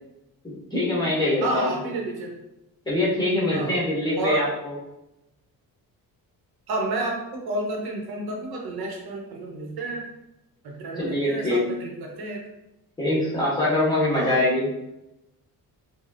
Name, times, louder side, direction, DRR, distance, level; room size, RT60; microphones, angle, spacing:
voice 1, 0.4-1.7 2.8-4.7 11.0-11.6 13.0-14.7, left 1 dB, 10° left, -6 dB, 1.2 m, -23 dB
voice 2, 1.4-2.3 3.5-3.7 4.2-4.4 6.7-10.1 10.6-12.4 14.1-14.4, right 2 dB, 80° right, 0 dB, 1.1 m, -30 dB
5.2 x 2.4 x 2.7 m, 0.91 s
cardioid pair, 160°, 37 cm